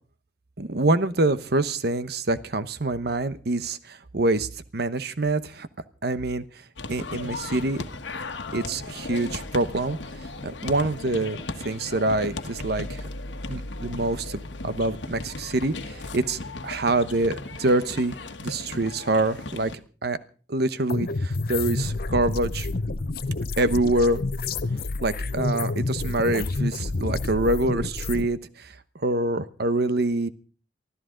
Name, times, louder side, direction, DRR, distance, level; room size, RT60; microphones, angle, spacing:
voice 1, 0.6-5.7 6.0-6.4 6.9-7.8 8.5-10.0 10.4-13.1 13.5-18.1 18.4-19.7 20.0-20.2 20.5-22.7 23.6-24.2 25.0-30.3, right 2 dB, 60° right, 13 dB, 1.0 m, -25 dB
sound 1, 6.8-19.7, left 2 dB, 90° left, 1.4 m, -36 dB
sound 2, 20.9-28.3, left 3 dB, 55° left, 0.8 m, -29 dB
24.0 x 14.0 x 3.9 m, 0.38 s
head